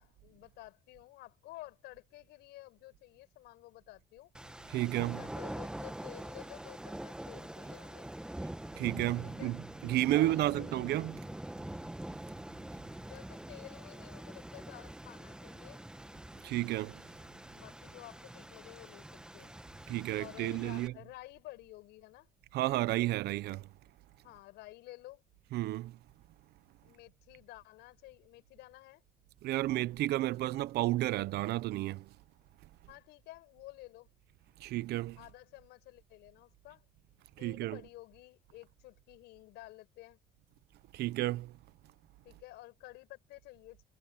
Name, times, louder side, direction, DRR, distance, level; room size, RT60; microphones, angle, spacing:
voice 1, 0.0-4.3 5.1-8.1 9.2-9.6 10.0-10.8 13.0-15.8 17.3-19.5 20.2-22.3 24.2-25.2 26.8-29.0 32.9-34.1 35.2-36.8 37.4-40.2 42.2-43.9, left 18 dB, 90° left, 5.5 m, -52 dB
sound 1, 4.3-20.9, right 1 dB, 5° right, 1.2 m, -45 dB
voice 2, 4.7-5.2 8.8-11.2 16.4-17.0 19.9-20.9 22.5-23.7 25.5-25.9 29.4-32.0 34.6-35.2 37.4-37.8 40.9-41.5, right 16 dB, 75° right, 0.8 m, -32 dB
cardioid pair, 110°, 17 cm